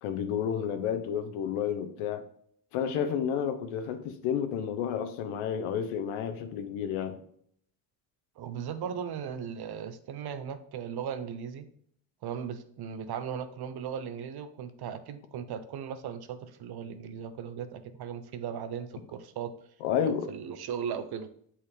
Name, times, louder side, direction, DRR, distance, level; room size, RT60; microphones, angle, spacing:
voice 1, 0.0-2.3 2.7-7.2 19.8-20.3, left 8 dB, 80° left, 1.0 m, -31 dB
voice 2, 8.4-11.7 12.2-19.5 20.0-21.3, right 7 dB, 50° right, 0.8 m, -37 dB
7.7 x 4.2 x 3.5 m
cardioid pair, 100°, 49 cm